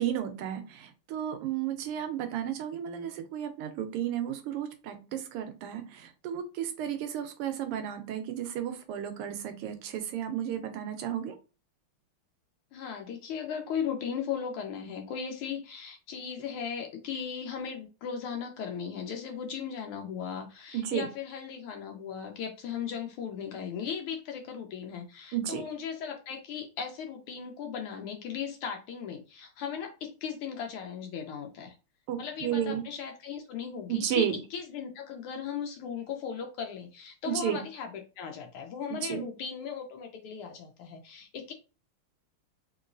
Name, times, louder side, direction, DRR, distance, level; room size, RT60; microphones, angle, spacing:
voice 1, 0.0-11.4 20.7-21.1 25.3-25.6 32.1-32.8 33.9-34.3 37.3-37.6 39.1-39.2, right 10 dB, 85° right, 8 dB, 1.6 m, -33 dB
voice 2, 12.7-31.8 32.2-41.5, left 7 dB, 80° left, 3 dB, 1.5 m, -37 dB
3.8 x 2.9 x 2.5 m, 0.32 s
omnidirectional pair, 2.4 m